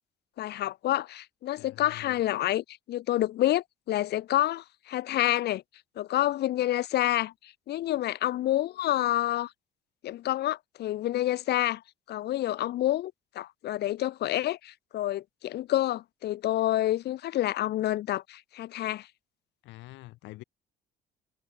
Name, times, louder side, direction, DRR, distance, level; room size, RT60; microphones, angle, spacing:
voice 1, 0.4-5.6 6.0-9.5 10.0-11.8 12.1-19.1, left 14 dB, 60° left, 1.4 m, -28 dB
voice 2, 1.6-2.2 19.6-20.4, left 19 dB, 85° left, 2.1 m, -46 dB
cardioid pair, 130°, 19 cm